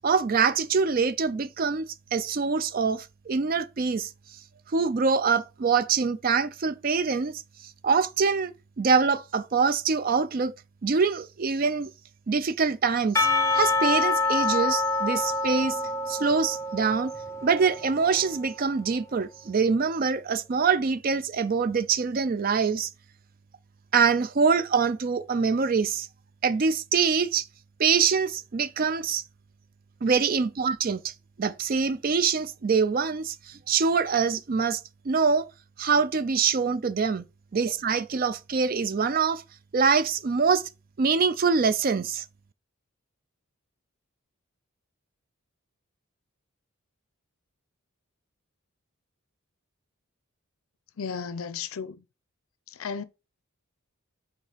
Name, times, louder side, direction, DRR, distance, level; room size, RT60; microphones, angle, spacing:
voice 1, 0.0-4.1 4.7-7.4 7.8-8.5 8.8-10.5 10.8-11.9 12.3-13.3 13.5-15.8 16.1-17.1 17.4-22.9 23.9-26.1 26.4-27.5 27.8-29.2 30.0-31.1 31.4-35.5 35.8-37.2 37.5-39.4 39.7-40.7 41.0-42.2, right 5 dB, 40° right, 0.4 m, -24 dB
Percussion / Church bell, 13.2-18.4, left 3 dB, 15° left, 0.5 m, -26 dB
voice 2, 51.0-52.0 52.8-53.0, left 6 dB, 70° left, 0.5 m, -34 dB
5.4 x 3.5 x 5.0 m
head